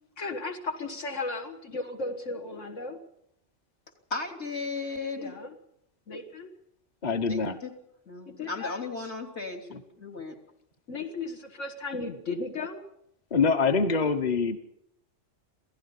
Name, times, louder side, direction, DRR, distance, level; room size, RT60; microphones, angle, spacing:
voice 1, 0.2-3.0 5.2-5.5 6.1-6.5 8.3-9.1 10.9-12.9, left 3 dB, 80° left, 4 dB, 2.1 m, -35 dB
voice 2, 4.1-5.4 7.1-7.7 8.1-10.4, left 3 dB, 65° left, 1 dB, 3.6 m, -36 dB
voice 3, 7.0-7.6 9.7-9.8 13.3-14.6, left 5 dB, 35° left, 7 dB, 1.3 m, -25 dB
27.5 x 17.0 x 5.6 m, 0.77 s
omnidirectional pair, 1.2 m